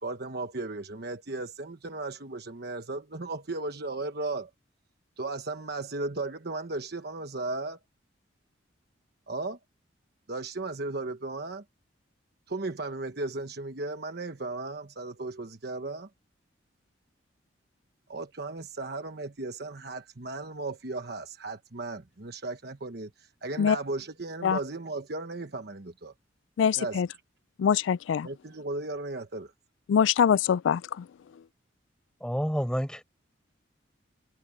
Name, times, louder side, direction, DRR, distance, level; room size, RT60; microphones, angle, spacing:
voice 1, 0.0-4.5 5.2-7.8 9.3-9.6 10.3-11.6 12.5-16.1 18.1-26.1 26.7-27.0 28.2-29.5, right 2 dB, 55° right, 1.2 m, -35 dB
voice 2, 26.6-27.1 27.6-28.3 29.9-31.0, left 7 dB, 75° left, 0.3 m, -23 dB
voice 3, 32.2-33.0, equal, 5° left, 5.7 m, -29 dB
head